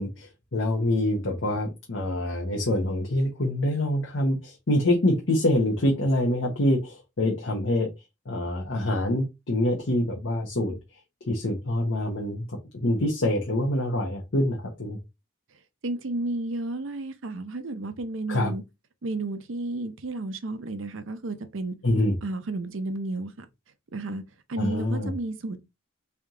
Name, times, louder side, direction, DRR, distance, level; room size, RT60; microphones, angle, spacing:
voice 1, 0.0-7.9 8.3-10.7 11.3-15.0 18.3-18.5 21.8-22.2 24.6-25.1, left 1 dB, 65° left, 0.9 m, -25 dB
voice 2, 15.8-18.6 19.0-21.7 22.2-23.5 23.9-24.2 24.5-25.6, right 2 dB, 70° right, 0.6 m, -32 dB
3.4 x 2.8 x 3.7 m
head